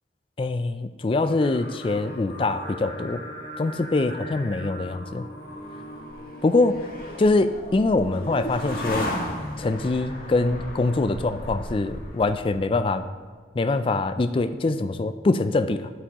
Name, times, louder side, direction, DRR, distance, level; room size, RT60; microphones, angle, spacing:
voice 1, 0.4-3.2 3.6-5.3 6.4-6.9 7.2-9.1 9.6-13.1 13.6-15.9, left 2 dB, 30° left, 10 dB, 0.3 m, -24 dB
Singing, 1.2-7.3, equal, 85° left, 1.7 m, -40 dB
sound 1, 5.5-12.9, left 1 dB, 55° left, 1.5 m, -35 dB
9.9 x 8.1 x 3.0 m, 1.5 s
head